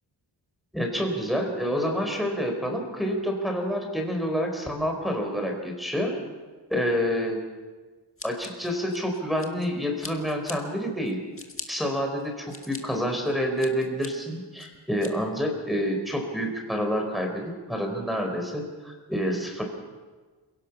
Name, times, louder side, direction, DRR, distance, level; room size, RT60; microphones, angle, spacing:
voice 1, 0.7-6.2 6.7-7.4 8.2-11.2 11.7-19.6, equal, ahead, 1 dB, 4.2 m, -28 dB
Scissors, 8.2-9.7 10.0-10.6 11.0-11.7 12.2-12.8 13.2-14.1 14.6-15.1, left 3 dB, 30° left, 1.9 m, -41 dB
27.5 x 17.5 x 6.1 m, 1.4 s
wide cardioid pair, 125°, 43 cm